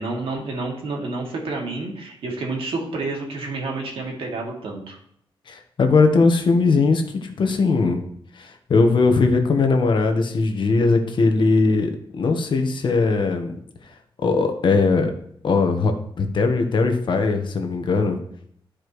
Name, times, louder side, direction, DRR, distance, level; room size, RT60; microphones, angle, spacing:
voice 1, 0.0-5.0, right 3 dB, 85° right, -1 dB, 2.3 m, -29 dB
voice 2, 5.5-8.0 8.4-11.9 12.2-13.5 14.2-15.1 15.4-18.2, left 3 dB, 60° left, 5 dB, 1.2 m, -19 dB
13.0 x 5.1 x 3.1 m, 0.68 s
wide cardioid pair, 140°, 9 cm